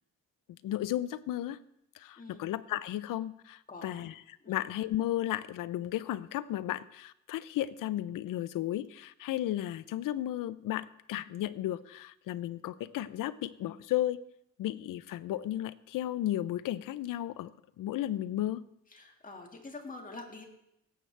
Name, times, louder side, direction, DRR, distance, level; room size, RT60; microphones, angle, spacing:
voice 1, 0.6-1.6 1.9-4.1 4.5-14.2 14.6-17.5 17.8-18.6, left 13 dB, 85° left, 16 dB, 0.5 m, -34 dB
voice 2, 2.2-2.5 3.7-4.1 4.4-4.7 18.9-20.4, left 3 dB, 25° left, 2 dB, 2.0 m, -46 dB
17.0 x 7.9 x 3.3 m, 0.79 s
cardioid pair, 115°, 32 cm